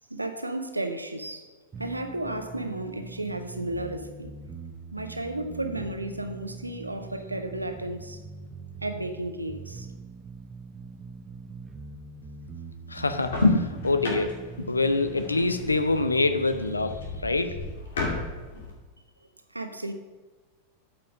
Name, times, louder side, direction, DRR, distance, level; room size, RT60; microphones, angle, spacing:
voice 1, 0.1-4.3 4.9-8.2 8.8-9.9 19.2-19.9, right 1 dB, 85° right, 0.7 m, -33 dB
sound 1, 1.7-17.7, right 4 dB, 20° right, 0.7 m, -43 dB
voice 2, 12.9-17.6, left 3 dB, 80° left, 0.7 m, -25 dB
sound 2, 13.0-18.7, left 3 dB, 65° left, 2.6 m, -36 dB
8.7 x 6.0 x 6.1 m
figure-of-eight pair, 90°, 0 cm